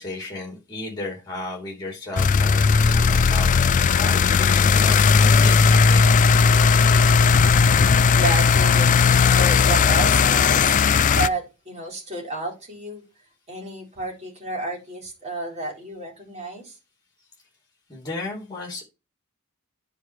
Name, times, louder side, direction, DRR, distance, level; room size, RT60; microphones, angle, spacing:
voice 1, 0.0-3.6 4.0-6.2 17.9-18.8, left 2 dB, 20° left, 2.9 m, -34 dB
sound 1, 2.2-11.3, left 5 dB, 35° left, 0.3 m, -17 dB
voice 2, 6.9-7.3 7.9-13.0 13.5-16.7, right 2 dB, 30° right, 4.2 m, -31 dB
10.0 x 4.5 x 4.8 m
head